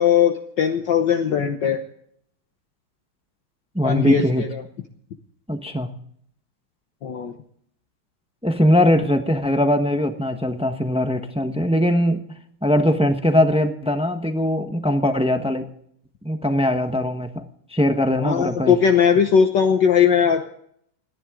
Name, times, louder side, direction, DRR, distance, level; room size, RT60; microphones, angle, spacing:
voice 1, 0.0-1.8 3.8-4.6 7.0-7.3 18.2-20.5, left 7 dB, 60° left, 4 dB, 1.7 m, -19 dB
voice 2, 3.7-4.4 5.5-5.9 8.4-12.2 12.6-15.7 16.2-17.4 17.7-18.8, left 1 dB, 5° right, 6 dB, 0.7 m, -20 dB
29.0 x 11.0 x 3.8 m, 0.67 s
omnidirectional pair, 2.3 m